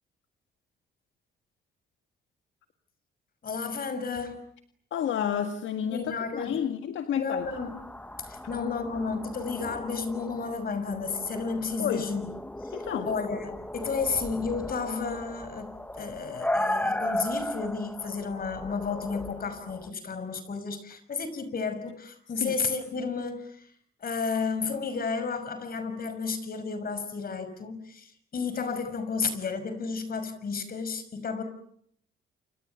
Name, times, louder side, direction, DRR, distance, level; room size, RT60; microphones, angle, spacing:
voice 1, 3.4-4.4 5.8-6.5 7.2-7.7 8.2-12.2 12.6-12.7 13.1-23.7 24.0-31.4, left 5 dB, 50° left, 11 dB, 6.0 m, -32 dB
voice 2, 4.9-7.5 11.8-12.1 12.7-13.1 22.4-22.5, left 9 dB, 75° left, 7 dB, 1.9 m, -30 dB
sound 1, 7.4-19.9, left 1 dB, 5° left, 1.7 m, -36 dB
28.5 x 27.5 x 7.0 m, 0.66 s
cardioid pair, 90°, 20 cm